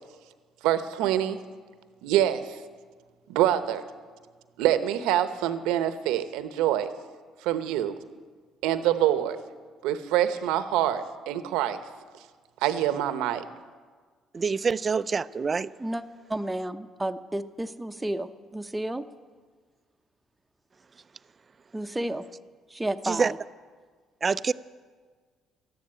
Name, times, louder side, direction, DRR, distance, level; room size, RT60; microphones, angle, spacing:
voice 1, 0.6-1.4 2.0-2.6 3.3-3.8 4.6-6.9 7.4-8.0 8.6-9.4 9.8-11.8 12.6-13.5, right 12 dB, 85° right, 11 dB, 0.9 m, -25 dB
voice 2, 14.3-15.7 23.0-23.3 24.2-24.5, right 5 dB, 35° right, 16 dB, 0.5 m, -26 dB
voice 3, 16.3-19.0 21.7-22.2 22.7-23.4, right 1 dB, 10° right, 8 dB, 0.9 m, -31 dB
13.5 x 10.5 x 9.1 m, 1.5 s
supercardioid pair, 70°, 0 cm